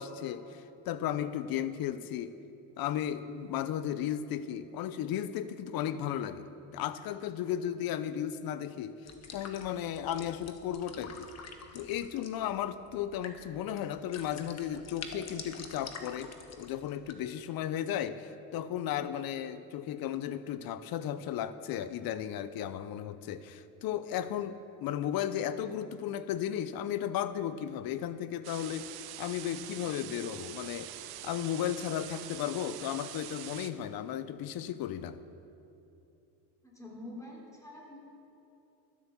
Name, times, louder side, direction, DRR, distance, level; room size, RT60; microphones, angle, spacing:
voice 1, 0.0-2.4 2.8-6.5 6.7-8.9 9.3-11.3 11.7-35.2, left 10 dB, 60° left, 14 dB, 0.8 m, -35 dB
sound 1, 9.1-17.1, left 5 dB, 40° left, 1.3 m, -48 dB
sound 2, 28.4-33.7, right 13 dB, 65° right, 0.8 m, -44 dB
voice 2, 36.6-38.0, left 1 dB, 10° left, -3 dB, 3.4 m, -46 dB
13.0 x 8.3 x 7.0 m, 2.9 s
cardioid pair, 100°, 40 cm